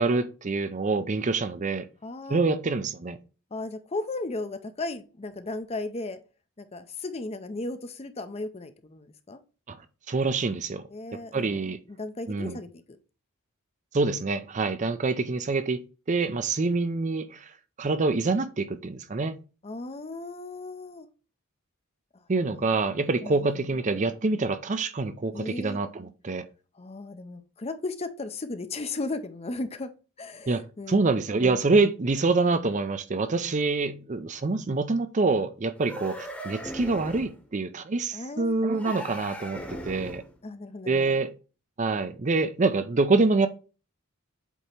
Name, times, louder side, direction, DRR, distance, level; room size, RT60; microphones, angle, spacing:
voice 1, 0.0-1.9 2.3-3.2 9.7-9.8 10.1-10.8 11.3-11.8 12.3-12.6 13.9-15.8 16.1-17.5 17.8-19.4 22.3-26.5 30.5-30.6 30.9-40.2 40.9-41.3 41.8-43.5, right 3 dB, 35° right, 0.5 m, -26 dB
voice 2, 2.0-2.4 3.5-6.2 6.6-9.4 10.9-11.6 11.9-13.0 19.6-21.1 22.1-22.2 22.5-22.8 23.2-23.7 25.3-25.8 26.7-29.9 30.2-31.1 38.1-38.6 40.4-41.1, left 2 dB, 30° left, 0.6 m, -36 dB
sound 1, 35.8-37.4 38.7-40.4, equal, 5° left, 1.0 m, -39 dB
8.1 x 2.9 x 4.4 m
head